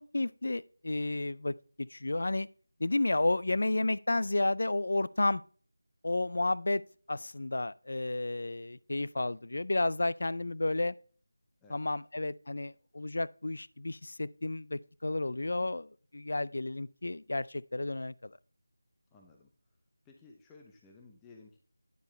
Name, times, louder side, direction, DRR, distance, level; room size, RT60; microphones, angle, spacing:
voice 1, 0.1-2.5 2.8-5.4 6.0-6.8 7.1-10.9 11.7-18.3, left 2 dB, 60° left, 0.4 m, -32 dB
voice 2, 19.1-19.5 20.0-21.6, left 3 dB, 10° left, 0.6 m, -56 dB
9.2 x 7.1 x 3.2 m
figure-of-eight pair, 170°, 0 cm